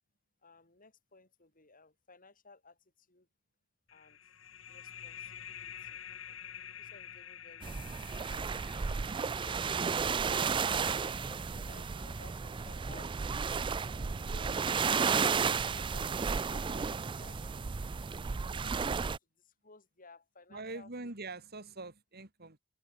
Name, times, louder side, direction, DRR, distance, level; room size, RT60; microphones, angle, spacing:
voice 1, 0.4-3.3 3.9-4.2 4.7-6.0 6.3-6.4 6.8-9.8 10.7-13.2 13.7-17.7 18.5-20.9, left 3 dB, 45° left, 6.9 m, -58 dB
sound 1, 3.9-13.2, left 9 dB, 75° left, 2.9 m, -50 dB
sound 2, 7.6-19.2, right 5 dB, 25° right, 0.4 m, -33 dB
sound 3, 9.4-17.0, equal, 25° left, 2.3 m, -57 dB
voice 2, 20.5-22.6, right 3 dB, 50° right, 3.1 m, -43 dB
head